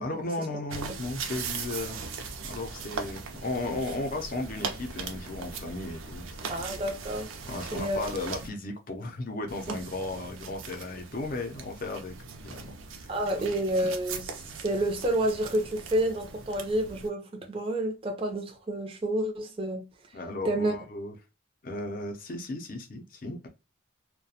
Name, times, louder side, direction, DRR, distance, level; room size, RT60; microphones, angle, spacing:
voice 1, 0.0-2.0 2.5-6.7 7.4-13.5 20.1-21.1 21.6-23.5, left 2 dB, 45° left, 0.5 m, -35 dB
sound 1, 0.7-8.5 9.5-17.1, right 5 dB, 85° right, 0.5 m, -40 dB
voice 2, 6.5-7.3 7.7-8.0 9.7-9.8 13.1-19.9 20.4-20.7, right 1 dB, 25° right, 0.4 m, -29 dB
2.4 x 2.2 x 2.7 m
head